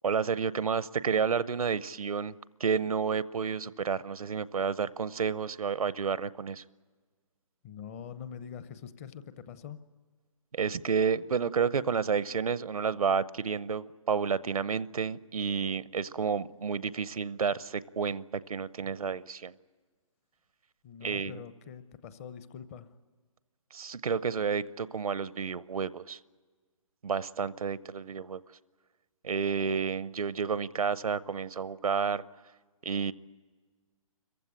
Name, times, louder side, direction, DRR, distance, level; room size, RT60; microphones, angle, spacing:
voice 1, 0.0-2.3 2.6-6.6 10.5-18.2 18.5-19.5 21.0-21.4 23.7-26.2 27.0-28.4 29.2-32.2 32.8-33.1, right 6 dB, 85° right, 18 dB, 0.8 m, -30 dB
voice 2, 7.6-9.8 20.8-22.9, left 8 dB, 25° left, 13 dB, 0.8 m, -44 dB
25.5 x 15.0 x 10.0 m, 1.5 s
hypercardioid pair, 155°, 18 cm